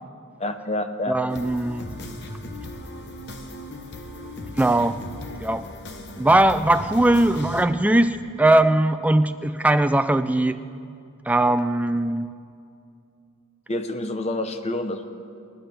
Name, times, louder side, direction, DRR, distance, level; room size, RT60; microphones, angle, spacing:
voice 1, 0.4-1.2 9.3-9.4 13.7-15.1, left 1 dB, 30° left, 8 dB, 0.6 m, -28 dB
voice 2, 1.1-1.9 4.6-5.0 5.4-5.7 6.2-10.6 11.3-12.3, right 1 dB, 5° right, 10 dB, 0.3 m, -20 dB
sound 1, 1.3-7.6, left 1 dB, 50° left, 1.1 m, -37 dB
25.5 x 12.0 x 3.4 m, 2.4 s
head